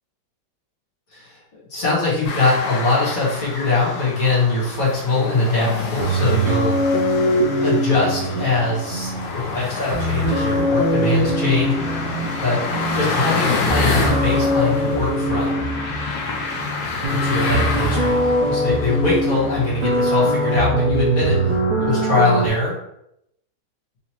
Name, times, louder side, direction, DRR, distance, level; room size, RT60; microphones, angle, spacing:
voice 1, 1.7-6.8 7.6-12.6 12.9-15.6 17.1-21.4 21.8-22.8, left 3 dB, 55° left, -7 dB, 1.7 m, -22 dB
sound 1, 2.2-20.5, left 4 dB, 85° left, 1.4 m, -28 dB
sound 2, 6.0-22.5, right 1 dB, 75° right, 1.4 m, -22 dB
3.9 x 2.8 x 2.9 m, 0.80 s
omnidirectional pair, 1.9 m